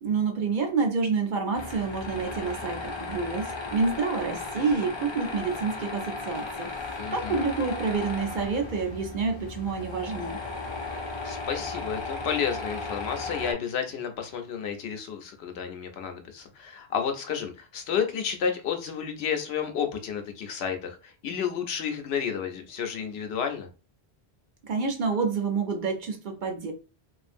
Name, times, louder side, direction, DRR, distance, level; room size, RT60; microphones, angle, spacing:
voice 1, 0.0-6.7 7.1-10.4 24.6-26.7, right 4 dB, 60° right, 4 dB, 0.6 m, -28 dB
Tools, 1.5-13.5, left 3 dB, 40° left, 0.4 m, -36 dB
voice 2, 7.0-7.4 11.2-23.7, left 7 dB, 80° left, 5 dB, 0.8 m, -31 dB
2.5 x 2.4 x 2.5 m, 0.33 s
omnidirectional pair, 1.1 m